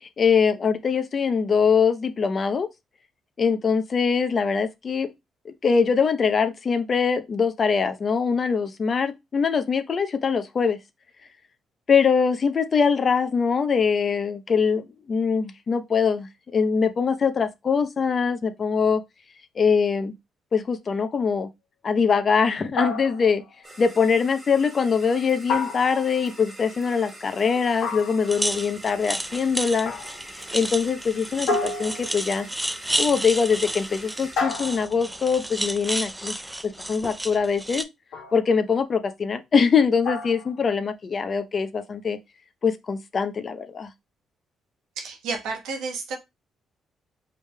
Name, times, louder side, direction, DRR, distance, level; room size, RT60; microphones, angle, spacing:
voice 1, 0.0-2.7 3.4-5.1 5.4-10.8 11.9-19.0 19.6-20.1 20.5-21.5 21.8-23.4 23.8-29.9 30.5-32.5 33.0-37.9 38.3-42.2 42.6-43.9, left 5 dB, 45° left, 0.6 m, -23 dB
sound 1, 22.8-23.5 25.5-26.3 27.8-28.4 29.9-30.3 31.5-32.4 34.4-35.2 38.1-38.5 40.0-40.6, left 3 dB, 80° left, 1.3 m, -30 dB
sound 2, 23.6-34.4, right 1 dB, 30° right, 1.3 m, -44 dB
sound 3, 28.3-37.8, right 1 dB, 10° right, 0.4 m, -31 dB
voice 2, 45.0-46.2, right 4 dB, 85° right, 1.1 m, -31 dB
4.9 x 3.2 x 2.2 m
cardioid pair, 90°, 0 cm